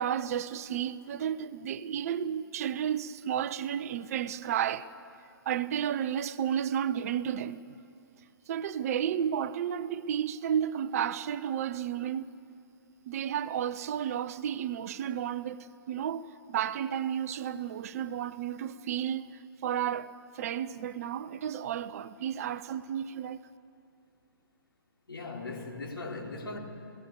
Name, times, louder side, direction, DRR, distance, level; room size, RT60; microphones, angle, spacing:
voice 1, 0.0-4.9 5.5-7.7 8.5-12.4 13.1-23.4, right 9 dB, 40° right, 0.7 m, -32 dB
voice 2, 25.1-26.6, left 3 dB, 75° left, 3.5 m, -39 dB
28.5 x 17.0 x 7.1 m
figure-of-eight pair, 125°, 12 cm